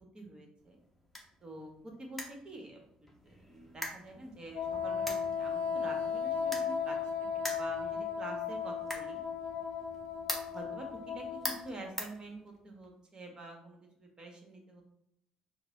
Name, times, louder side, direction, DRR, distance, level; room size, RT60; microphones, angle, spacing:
voice 1, 0.1-0.8 1.4-7.0 7.3-9.2 10.5-14.8, right 2 dB, 35° right, 2 dB, 1.2 m, -47 dB
sound 1, 0.6-12.9, left 1 dB, 5° left, 1.0 m, -45 dB
Wind instrument woodwind instrument, 4.5-11.9, left 6 dB, 70° left, 0.4 m, -35 dB
4.6 x 2.2 x 3.8 m, 0.76 s
supercardioid pair, 75°, 3 cm